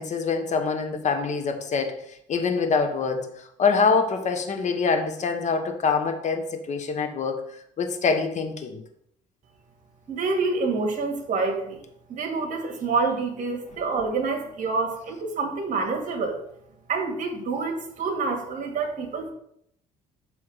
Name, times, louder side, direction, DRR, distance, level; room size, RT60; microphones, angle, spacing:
voice 1, 0.0-7.4 7.8-8.8, left 5 dB, 45° left, 6 dB, 1.2 m, -25 dB
voice 2, 10.1-11.8 12.1-16.4 16.9-19.3, right 4 dB, 50° right, 2 dB, 2.1 m, -27 dB
7.7 x 3.6 x 6.3 m, 0.73 s
cardioid pair, 110°, 17 cm